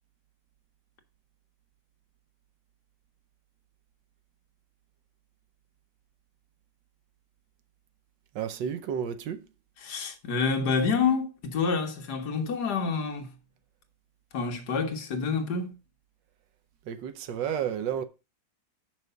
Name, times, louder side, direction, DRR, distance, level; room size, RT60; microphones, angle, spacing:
voice 1, 8.3-9.5 16.9-18.0, right 8 dB, 70° right, 1.4 m, -31 dB
voice 2, 9.8-13.3 14.3-15.8, left 5 dB, 60° left, 1.8 m, -28 dB
6.1 x 5.4 x 6.7 m
omnidirectional pair, 2.1 m